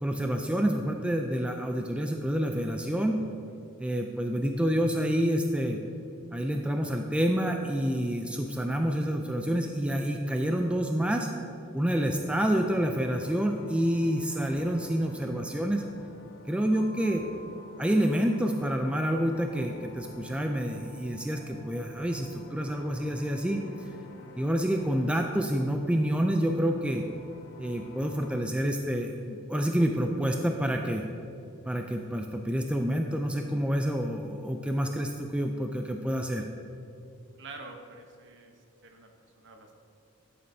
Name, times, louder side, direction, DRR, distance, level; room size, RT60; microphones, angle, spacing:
voice 1, 0.0-3.2 3.8-5.8 6.3-11.3 11.7-15.8 16.5-17.3 17.8-23.6 24.4-27.0 27.6-31.0 31.6-36.5, equal, 5° right, 3 dB, 0.3 m, -28 dB
sound 1, 11.8-28.4, left 2 dB, 70° left, 1.1 m, -49 dB
voice 2, 37.4-38.6 38.8-39.8, right 3 dB, 55° right, 4 dB, 0.9 m, -47 dB
11.0 x 6.7 x 2.7 m, 2.5 s
head